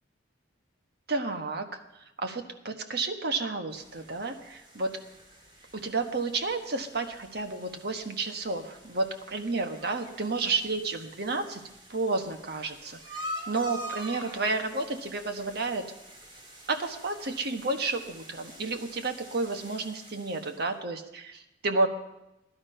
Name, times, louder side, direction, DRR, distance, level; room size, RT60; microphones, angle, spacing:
voice 1, 1.1-1.8 2.2-5.0 5.7-11.6 11.9-15.9 16.7-21.9, right 3 dB, 60° right, 6 dB, 1.4 m, -31 dB
sound 1, 3.7-20.7, equal, 25° right, 2.8 m, -46 dB
17.0 x 11.5 x 5.7 m, 0.92 s
head